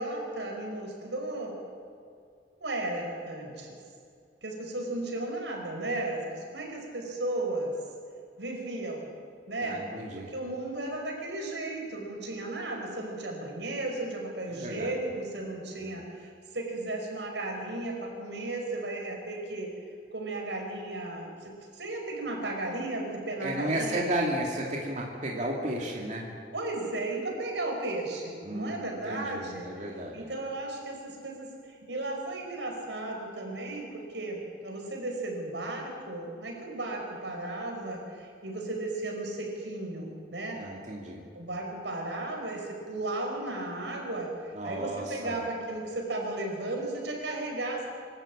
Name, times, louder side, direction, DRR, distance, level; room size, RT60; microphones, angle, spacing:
voice 1, 0.0-1.6 2.6-3.8 4.4-7.7 8.4-9.1 9.5-9.9 10.1-19.7 20.1-24.3 26.5-40.6 41.3-47.9, right 2 dB, 85° right, 1 dB, 5.4 m, -35 dB
voice 2, 9.6-10.3 14.5-14.9 15.8-16.0 23.4-26.3 28.4-28.8 29.1-30.3 40.6-41.2 44.6-45.4, right 1 dB, 45° right, -2 dB, 2.5 m, -33 dB
25.0 x 13.0 x 8.7 m, 2.3 s
head